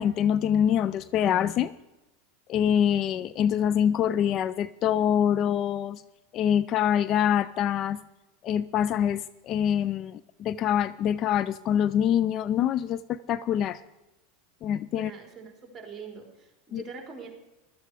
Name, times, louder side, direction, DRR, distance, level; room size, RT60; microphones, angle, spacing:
voice 1, 0.0-1.7 2.5-6.0 6.3-8.0 8.4-13.8 14.6-15.1 16.7-16.8, left 9 dB, 45° left, 16 dB, 0.4 m, -25 dB
voice 2, 15.0-17.4, right 5 dB, 20° right, 2 dB, 3.9 m, -43 dB
15.5 x 12.5 x 4.8 m, 0.99 s
hypercardioid pair, 95°, 0 cm